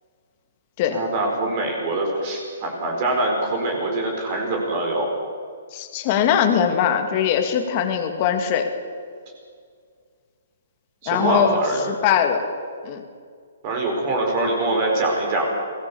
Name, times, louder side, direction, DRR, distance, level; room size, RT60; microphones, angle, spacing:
voice 1, 0.9-5.1 11.0-11.8 13.6-15.5, right 2 dB, 30° right, 1 dB, 4.5 m, -24 dB
voice 2, 5.7-8.7 11.1-12.4 12.8-13.0, left 8 dB, 30° left, 5 dB, 2.1 m, -21 dB
22.5 x 18.0 x 7.0 m, 2.1 s
hypercardioid pair, 170°, 0 cm